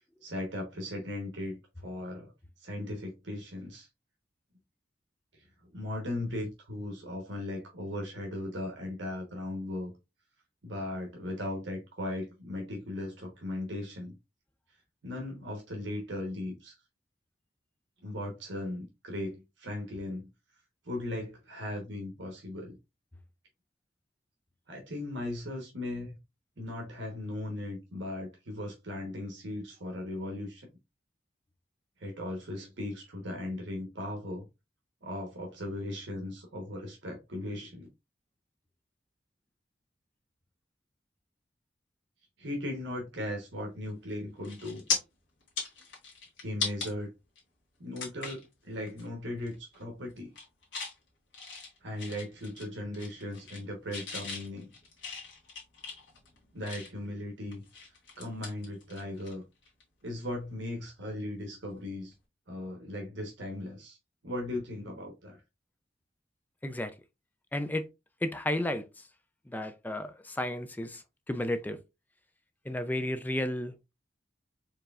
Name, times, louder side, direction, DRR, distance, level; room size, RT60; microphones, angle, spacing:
voice 1, 0.2-2.3 2.6-3.9 5.3-5.4 5.7-9.9 10.6-14.1 15.0-16.8 18.0-20.3 20.8-22.7 24.7-26.2 26.6-30.7 32.0-34.4 35.0-37.9 42.4-44.8 46.4-47.1 47.8-50.3 51.8-54.7 56.5-57.6 58.2-59.4 60.0-62.1 62.5-64.0 64.2-65.4, left 1 dB, 75° right, 1.1 m, -37 dB
sound 1, 43.9-44.1 44.4-45.0 45.4-46.9 47.4-47.5 48.0-48.5 48.9-49.1 49.4-49.8 50.2-50.9 51.3-52.7 52.9-53.6 53.9-57.1 57.5-59.3 59.6-59.8 61.7-61.9, left 4 dB, 75° left, 1.7 m, -38 dB
voice 2, 66.6-66.9 67.5-67.9 68.2-69.1 69.5-71.8 72.6-73.7, left 1 dB, 10° left, 0.3 m, -33 dB
4.6 x 3.2 x 2.4 m
head